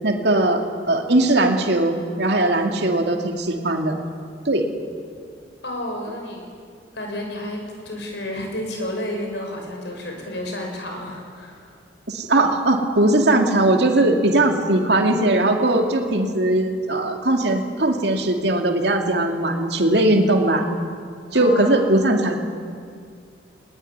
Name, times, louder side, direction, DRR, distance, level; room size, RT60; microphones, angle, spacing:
voice 1, 0.0-4.0 4.4-4.6 12.1-20.6 21.3-22.4, right 1 dB, 65° right, 3 dB, 2.5 m, -19 dB
voice 2, 5.6-6.5 6.9-11.8 21.3-21.8, left 1 dB, 70° left, 2 dB, 6.2 m, -31 dB
20.5 x 20.5 x 9.7 m, 2.2 s
head